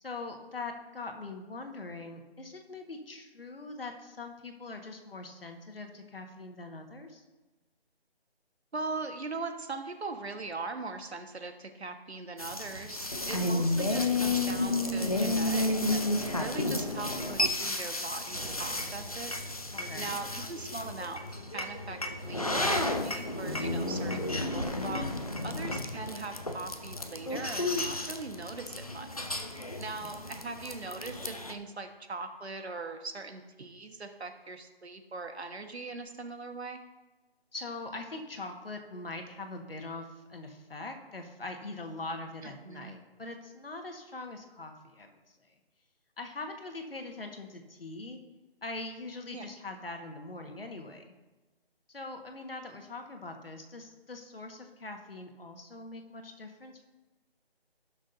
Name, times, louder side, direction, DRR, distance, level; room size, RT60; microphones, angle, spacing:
voice 1, 0.0-7.2 19.7-20.2 30.0-30.4 37.5-45.5 46.2-48.2 48.6-51.1 51.9-56.8, left 3 dB, 65° left, 4 dB, 1.6 m, -42 dB
voice 2, 8.7-16.0 16.4-19.3 20.0-21.2 21.5-25.1 25.4-29.1 29.8-36.8 42.4-43.0 49.3-49.5, right 3 dB, 90° right, 6 dB, 1.5 m, -40 dB
sound 1, 12.4-31.5, left 2 dB, 35° left, 0.6 m, -32 dB
sound 2, 18.3-20.4, right 2 dB, 60° right, 3.5 m, -47 dB
17.5 x 6.2 x 2.7 m, 1.2 s
figure-of-eight pair, 180°, 31 cm